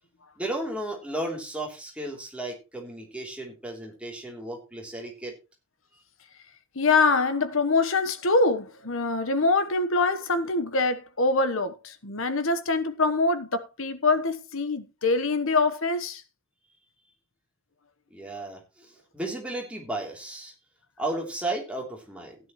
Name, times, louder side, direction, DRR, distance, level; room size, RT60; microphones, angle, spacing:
voice 1, 0.4-5.4 18.1-20.5 21.0-22.3, right 1 dB, 5° right, 3.1 m, -34 dB
voice 2, 6.7-16.2 18.4-18.5, left 3 dB, 65° left, 1.2 m, -24 dB
15.5 x 10.0 x 3.1 m
head